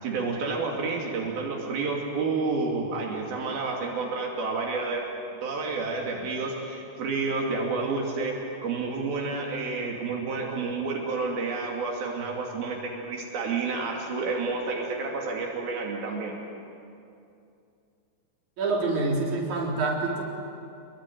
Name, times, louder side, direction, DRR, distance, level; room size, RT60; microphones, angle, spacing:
voice 1, 0.0-5.0 5.4-8.3 8.6-16.3, right 4 dB, 85° right, -1 dB, 4.5 m, -30 dB
voice 2, 18.6-20.2, right 3 dB, 55° right, -2 dB, 5.2 m, -26 dB
26.5 x 22.5 x 9.2 m, 2.6 s
omnidirectional pair, 4.2 m